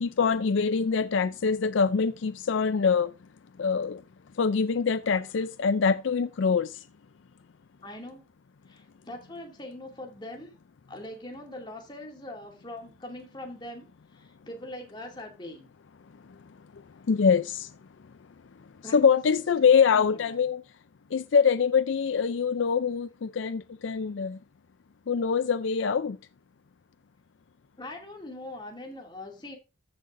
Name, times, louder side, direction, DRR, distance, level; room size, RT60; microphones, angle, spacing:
voice 1, 0.0-3.1 3.6-4.0 4.4-6.7 17.1-17.4 18.9-20.6 21.1-24.3 25.1-26.2, left 6 dB, 70° left, 0.4 m, -24 dB
voice 2, 7.8-8.3 8.7-10.6 10.9-15.7 18.8-19.4 19.9-20.4 27.8-29.6, left 1 dB, 20° left, 2.5 m, -42 dB
14.5 x 6.6 x 2.6 m
head